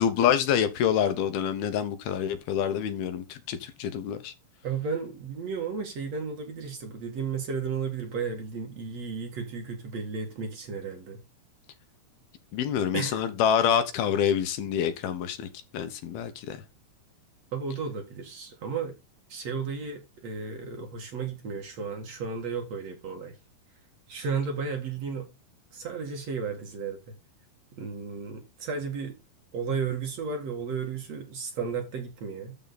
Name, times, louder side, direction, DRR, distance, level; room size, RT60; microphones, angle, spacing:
voice 1, 0.0-4.3 12.5-16.6, left 9 dB, 75° left, 2.9 m, -27 dB
voice 2, 4.6-11.2 12.9-13.2 17.5-19.0 19.3-23.4 24.1-25.3 25.7-27.0 27.7-29.2 29.5-32.6, right 5 dB, 50° right, 2.7 m, -33 dB
13.0 x 4.9 x 4.1 m
omnidirectional pair, 4.6 m